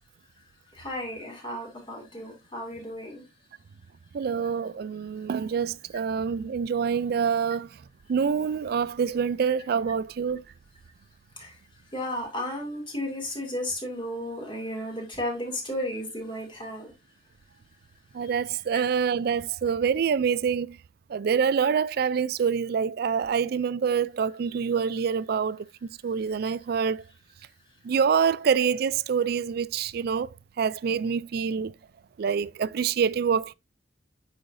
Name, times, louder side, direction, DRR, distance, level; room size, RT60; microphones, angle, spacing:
voice 1, 0.7-3.2 11.4-11.5 11.9-16.9 18.7-18.8, left 1 dB, 25° left, 2.4 m, -34 dB
voice 2, 4.1-7.7 8.1-10.4 18.1-20.8 21.1-27.0 27.8-31.7 32.2-33.5, right 6 dB, 55° right, 0.3 m, -26 dB
8.5 x 5.7 x 2.6 m
head